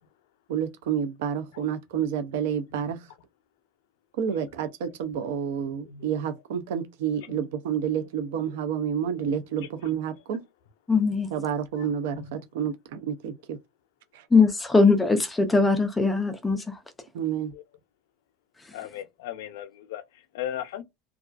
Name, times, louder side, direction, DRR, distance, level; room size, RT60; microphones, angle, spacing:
voice 1, 0.5-3.1 4.2-10.4 11.3-13.6 14.1-14.2 17.1-17.5, right 8 dB, 80° right, 0.4 m, -29 dB
voice 2, 10.9-11.3 14.3-16.6, left 4 dB, 10° left, 0.3 m, -20 dB
voice 3, 18.7-20.0 20.3-20.8, left 11 dB, 85° left, 0.5 m, -36 dB
2.4 x 2.3 x 2.3 m
cardioid pair, 175°, 0 cm